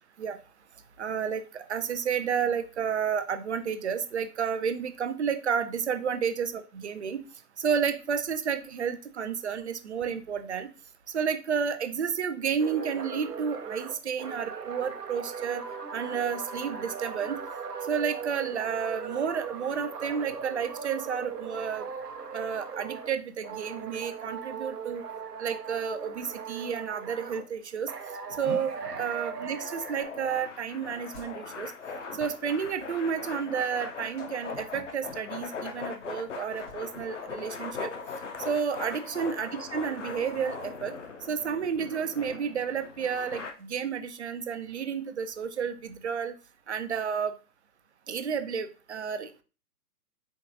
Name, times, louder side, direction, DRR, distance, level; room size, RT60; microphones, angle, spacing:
voice 1, 1.0-7.2 7.6-10.7 11.1-15.6 15.9-17.4 17.8-21.9 22.3-25.0 25.4-27.9 28.4-31.7 32.1-37.9 38.4-40.9 41.3-46.4 46.7-47.4 48.1-49.3, right 7 dB, 50° right, 10 dB, 0.5 m, -31 dB
sound 1, 12.6-23.2 23.4-27.4 27.9-30.0, right 6 dB, 85° right, 0.8 m, -39 dB
sound 2, 28.3-37.9 38.2-38.6 39.0-39.2 39.8-41.7, left 1 dB, 10° left, 0.6 m, -51 dB
sound 3, 28.8-43.5, left 5 dB, 50° left, 0.8 m, -40 dB
4.6 x 3.6 x 2.7 m, 0.34 s
figure-of-eight pair, 135°, 46 cm